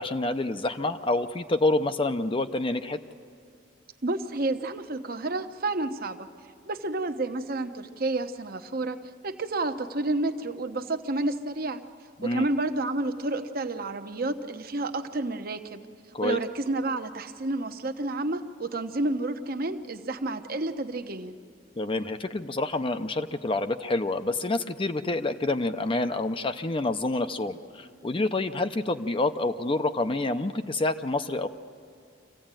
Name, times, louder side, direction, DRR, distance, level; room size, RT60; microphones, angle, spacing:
voice 1, 0.0-3.0 12.2-12.4 16.1-16.4 21.8-31.5, left 2 dB, 25° left, 9 dB, 0.6 m, -28 dB
voice 2, 4.0-6.3 6.7-9.0 9.2-11.8 12.2-15.8 16.2-21.4, right 2 dB, 50° right, 8 dB, 0.9 m, -30 dB
26.0 x 15.5 x 8.9 m, 2.3 s
head